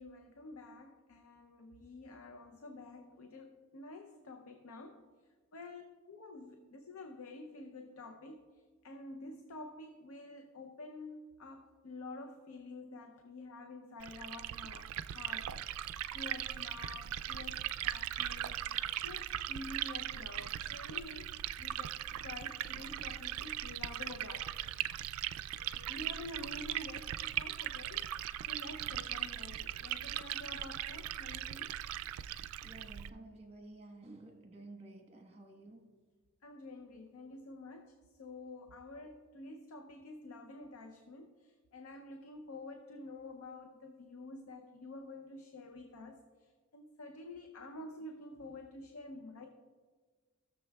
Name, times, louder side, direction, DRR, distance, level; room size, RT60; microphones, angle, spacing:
voice 1, 0.0-5.1 5.5-8.5 8.8-18.6 19.0-21.9 22.2-24.8 25.6-28.0 28.5-31.8 36.4-49.5, left 2 dB, 80° left, 0.6 m, -49 dB
Liquid, 14.0-33.1, right 12 dB, 85° right, 0.3 m, -39 dB
voice 2, 32.6-35.9, right 2 dB, 30° right, 1.2 m, -52 dB
17.0 x 6.8 x 2.3 m
head